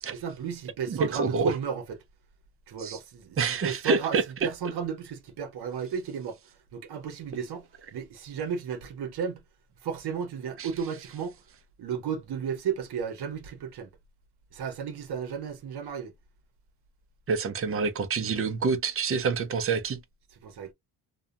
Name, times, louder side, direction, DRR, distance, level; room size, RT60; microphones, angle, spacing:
voice 1, 0.0-1.8 2.7-6.4 6.7-9.4 9.8-11.4 11.8-13.9 14.5-16.1 20.4-20.7, right 7 dB, 65° right, 0.8 m, -34 dB
voice 2, 0.9-1.6 2.8-3.0 3.4-4.2 10.6-10.7 17.3-20.0, right 5 dB, 35° right, 0.5 m, -27 dB
2.7 x 2.2 x 2.3 m
cardioid pair, 120°, 42 cm